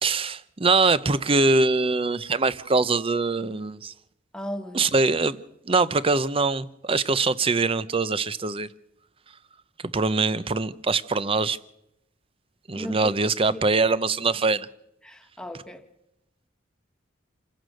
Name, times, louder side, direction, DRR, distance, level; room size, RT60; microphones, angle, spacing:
voice 1, 0.0-3.9 4.7-5.4 5.7-8.7 9.9-11.6 12.7-14.7, right 3 dB, 30° right, 0.7 m, -23 dB
voice 2, 4.3-4.8 12.8-13.0 13.5-13.7 15.0-15.9, equal, 5° left, 1.5 m, -36 dB
27.5 x 15.5 x 6.5 m
head